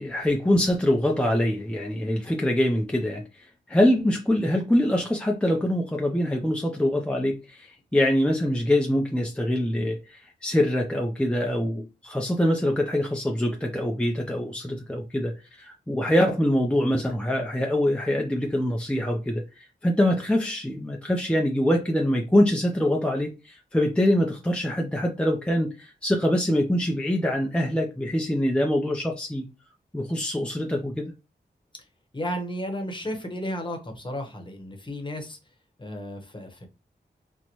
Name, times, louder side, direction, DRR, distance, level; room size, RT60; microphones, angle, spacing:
voice 1, 0.0-3.4 3.7-29.5 29.9-31.1, left 1 dB, 5° left, 0.5 m, -24 dB
voice 2, 32.1-35.4 35.8-36.7, equal, 25° left, 1.0 m, -33 dB
3.9 x 2.1 x 3.0 m
cardioid pair, 50°, 18 cm